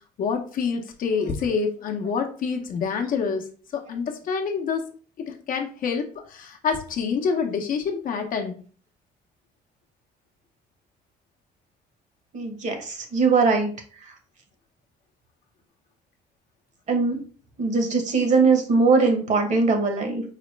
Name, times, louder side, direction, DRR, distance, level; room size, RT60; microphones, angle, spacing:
voice 1, 0.2-4.9 5.2-8.6, left 5 dB, 55° left, 4 dB, 0.7 m, -27 dB
voice 2, 12.3-13.7 16.9-17.2 17.6-20.2, right 4 dB, 45° right, 5 dB, 1.0 m, -21 dB
4.8 x 2.1 x 3.1 m, 0.42 s
cardioid pair, 110°, 17 cm